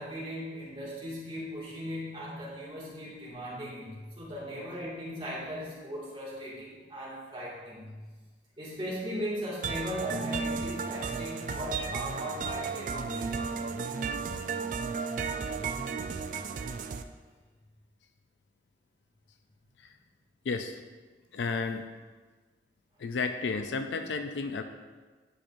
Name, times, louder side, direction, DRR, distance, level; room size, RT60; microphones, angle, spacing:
voice 1, 0.0-8.0 8.6-13.3, equal, 30° right, -7 dB, 2.1 m, -38 dB
sound 1, 9.6-17.0, right 5 dB, 45° right, 0.3 m, -34 dB
voice 2, 20.4-20.8 21.3-21.8 23.0-24.6, left 4 dB, 85° left, 8 dB, 0.4 m, -32 dB
10.0 x 5.1 x 2.6 m, 1.4 s
head